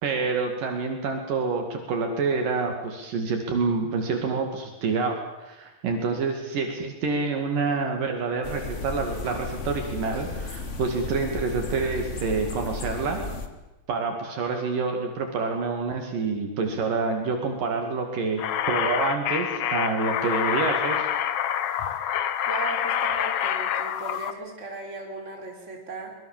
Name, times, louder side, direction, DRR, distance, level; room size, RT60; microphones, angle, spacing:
voice 1, 0.0-13.2 13.9-21.1, right 4 dB, 65° right, 3 dB, 3.8 m, -27 dB
sound 1, 8.4-13.5, left 3 dB, 55° left, 0.8 m, -34 dB
sound 2, 18.4-24.3, left 9 dB, 85° left, 1.3 m, -27 dB
voice 2, 22.5-26.2, right 3 dB, 20° right, 1 dB, 4.5 m, -37 dB
24.5 x 22.0 x 7.4 m, 1.0 s
omnidirectional pair, 4.3 m